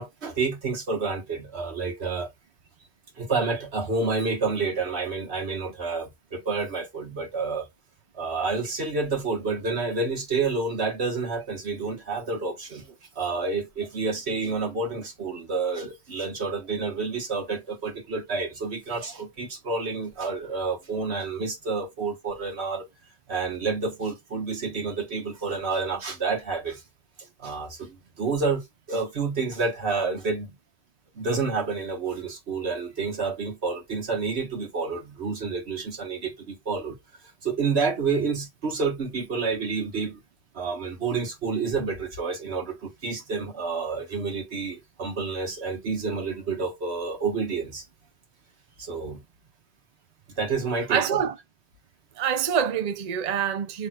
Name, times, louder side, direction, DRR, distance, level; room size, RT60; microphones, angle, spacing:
voice 1, 0.0-2.3 3.2-7.7 8.1-22.9 23.3-26.8 27.4-30.6 31.1-37.0 37.4-40.2 40.5-47.8 48.8-49.2 50.4-51.3, right 4 dB, 85° right, 1.7 m, -29 dB
voice 2, 50.9-51.3 52.2-53.9, right 8 dB, 45° right, 0.7 m, -25 dB
5.9 x 3.4 x 2.4 m
omnidirectional pair, 1.1 m